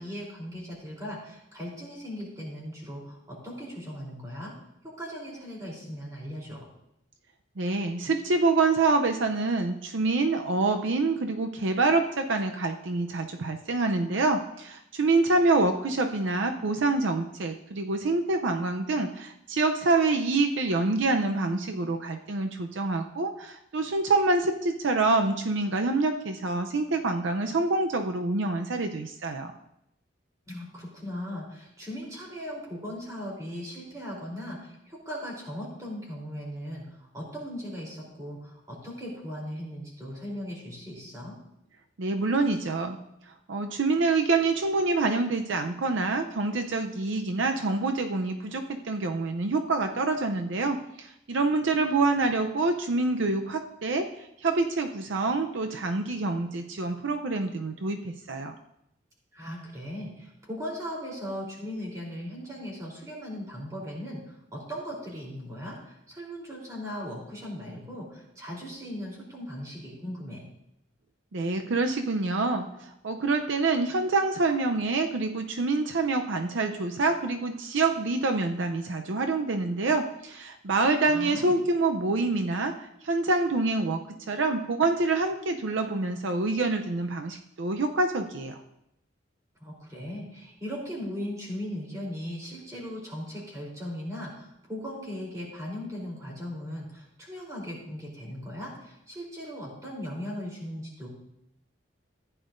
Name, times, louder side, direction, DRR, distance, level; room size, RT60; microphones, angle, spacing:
voice 1, 0.0-4.5 4.8-6.7 30.5-41.4 59.3-70.4 81.0-81.5 89.6-101.1, equal, 15° right, -4 dB, 3.4 m, -38 dB
voice 2, 7.6-29.5 42.0-43.0 43.5-58.5 71.3-84.0 84.3-88.6, right 3 dB, 75° right, 5 dB, 0.6 m, -26 dB
15.0 x 10.0 x 2.6 m, 0.80 s
head